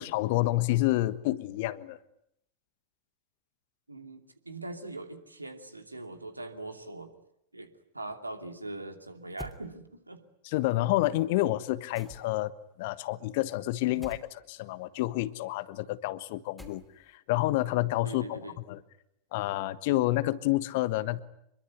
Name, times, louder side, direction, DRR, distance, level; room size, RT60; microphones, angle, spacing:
voice 1, 0.0-2.0 10.4-12.5 12.8-14.2 14.5-16.8 17.3-18.4 18.7-18.8 19.3-21.2, left 17 dB, 50° left, 15 dB, 1.3 m, -28 dB
voice 2, 3.9-7.1 7.5-10.3 13.9-14.1 18.0-18.6, right 2 dB, 80° right, 7 dB, 2.7 m, -42 dB
sound 1, 9.4-9.6 12.0-12.5 14.0-14.3 16.6-17.1, equal, ahead, 3.0 m, -46 dB
26.0 x 23.0 x 9.6 m, 0.75 s
figure-of-eight pair, 90°, 0 cm